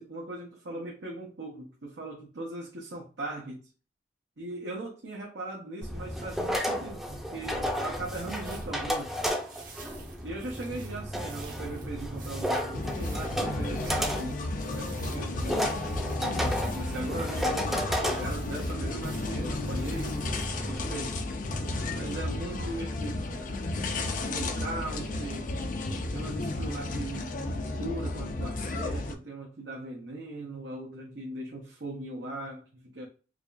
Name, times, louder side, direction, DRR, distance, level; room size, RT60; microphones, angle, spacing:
voice 1, 0.0-3.7 4.4-9.2 10.2-15.7 16.2-17.7 18.0-21.2 22.0-23.6 24.2-25.6 26.1-33.1, right 2 dB, 85° right, 0.8 m, -39 dB
sound 1, 5.8-20.8, equal, ahead, 0.5 m, -33 dB
sound 2, 7.5-20.5, right 5 dB, 50° right, 1.0 m, -52 dB
sound 3, 12.7-29.1, left 2 dB, 50° left, 0.5 m, -33 dB
4.8 x 2.4 x 2.5 m
head